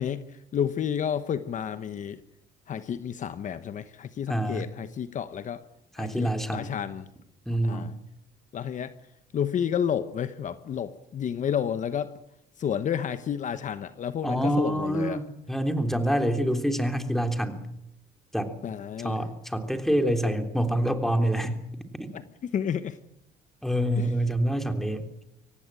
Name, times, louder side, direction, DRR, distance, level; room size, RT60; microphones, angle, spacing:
voice 1, 0.0-2.2 2.7-5.6 6.0-7.1 7.6-7.9 8.5-8.9 9.3-12.1 12.6-15.2 18.6-19.2 22.1-23.0 24.0-24.1, left 8 dB, 50° left, 12 dB, 1.1 m, -31 dB
voice 2, 4.3-4.7 6.0-6.7 7.4-7.9 14.2-15.2 15.5-17.6 18.3-18.5 19.0-21.6 23.6-25.1, equal, ahead, 6 dB, 3.3 m, -26 dB
24.5 x 18.0 x 9.0 m, 0.81 s
cardioid pair, 110°, 17 cm